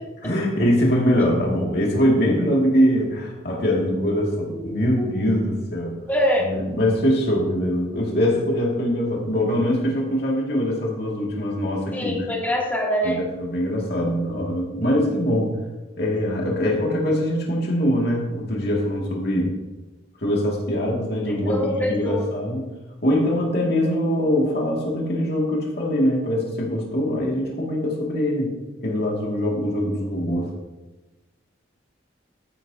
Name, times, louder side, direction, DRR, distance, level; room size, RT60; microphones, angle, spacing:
voice 1, 0.2-6.0 6.4-12.3 13.0-15.5 16.0-19.5 20.2-22.7 23.0-28.5 28.8-30.5, equal, 55° left, -2 dB, 2.2 m, -23 dB
voice 2, 6.1-6.4 11.9-13.2 21.5-22.2, equal, 10° left, -4 dB, 2.6 m, -24 dB
13.0 x 10.5 x 2.8 m, 1.1 s
head